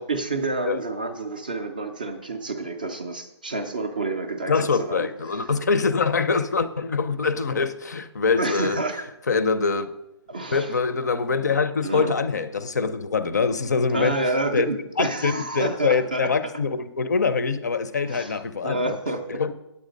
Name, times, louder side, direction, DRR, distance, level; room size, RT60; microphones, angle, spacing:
voice 1, 0.0-5.1 8.4-9.0 10.3-10.7 11.8-12.2 13.9-16.3 18.1-19.2, right 2 dB, 20° right, 0.4 m, -29 dB
voice 2, 4.5-8.8 9.3-9.9 10.5-14.2 14.5-14.7 15.0-19.0 19.3-19.5, left 4 dB, 35° left, 0.5 m, -24 dB
8.6 x 8.3 x 5.1 m
hypercardioid pair, 175°, 15 cm